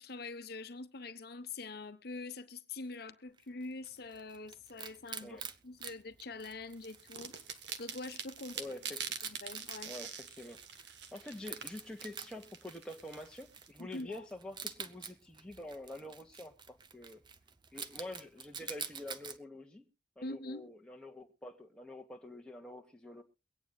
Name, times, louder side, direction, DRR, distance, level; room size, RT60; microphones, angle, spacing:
voice 1, 0.0-7.4 7.8-8.6 9.2-9.9 13.8-14.2 20.2-20.7, left 3 dB, 60° left, 1.0 m, -44 dB
Wild animals, 3.4-19.4, right 6 dB, 25° right, 0.7 m, -49 dB
sound 1, 6.8-13.7, right 7 dB, 80° right, 1.4 m, -45 dB
voice 2, 8.5-9.2 9.8-10.6 11.1-17.2 17.7-19.9 20.2-23.2, left 1 dB, 5° left, 1.4 m, -47 dB
23.5 x 9.2 x 2.4 m
head